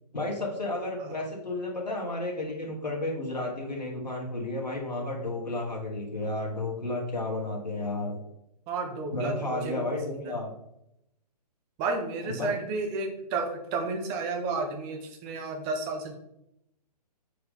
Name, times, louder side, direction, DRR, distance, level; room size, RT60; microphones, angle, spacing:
voice 1, 0.1-8.2 9.1-10.5 12.2-12.5, left 2 dB, 85° left, -2 dB, 1.7 m, -32 dB
voice 2, 8.7-10.4 11.8-16.2, right 3 dB, 20° right, 4 dB, 0.9 m, -32 dB
6.3 x 4.7 x 3.6 m, 0.81 s
figure-of-eight pair, 130°, 21 cm